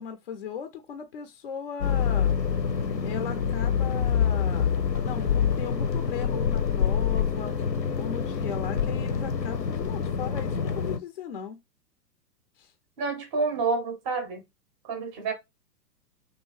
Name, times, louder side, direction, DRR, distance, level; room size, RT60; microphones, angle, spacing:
voice 1, 0.0-2.3 3.0-7.6 8.0-11.6 12.6-12.7, left 7 dB, 40° left, 0.4 m, -37 dB
sound 1, 1.8-11.0, left 7 dB, 85° left, 0.7 m, -26 dB
voice 2, 13.0-14.4 14.8-15.3, right 4 dB, 15° right, 0.5 m, -28 dB
2.7 x 2.6 x 3.1 m
figure-of-eight pair, 110°, 49 cm